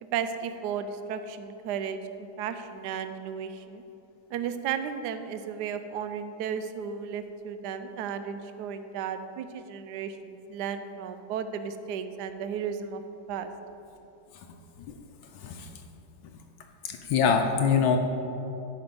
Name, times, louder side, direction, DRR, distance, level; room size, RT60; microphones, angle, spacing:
voice 1, 0.0-3.8 4.3-13.0 13.3-13.5, right 7 dB, 75° right, 10 dB, 1.0 m, -34 dB
voice 2, 15.3-15.8 16.8-18.0, left 6 dB, 80° left, 4 dB, 1.4 m, -24 dB
13.0 x 5.2 x 5.3 m, 2.9 s
omnidirectional pair, 2.2 m